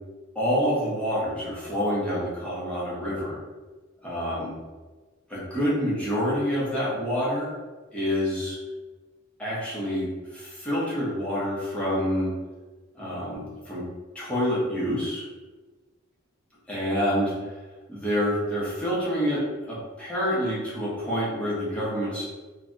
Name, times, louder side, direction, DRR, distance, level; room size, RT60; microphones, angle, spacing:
voice 1, 0.3-3.4 4.0-4.5 5.3-7.5 7.9-8.6 9.4-12.3 12.9-13.8 14.1-15.2 16.7-17.5 17.9-22.3, equal, 5° left, -8 dB, 0.9 m, -27 dB
3.3 x 2.3 x 2.5 m, 1.3 s
head